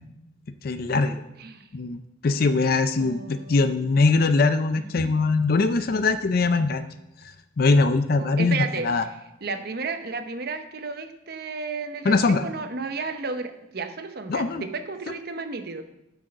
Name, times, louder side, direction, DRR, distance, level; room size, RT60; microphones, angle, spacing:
voice 1, 0.6-1.2 1.7-6.9 7.2-9.0 12.0-12.4 14.3-14.6, left 3 dB, 50° left, 10 dB, 0.4 m, -22 dB
voice 2, 1.4-1.7 3.0-3.6 4.9-5.1 6.5-6.6 8.2-8.9 9.4-15.8, right 4 dB, 50° right, 8 dB, 0.8 m, -33 dB
8.4 x 6.3 x 6.4 m, 0.87 s
head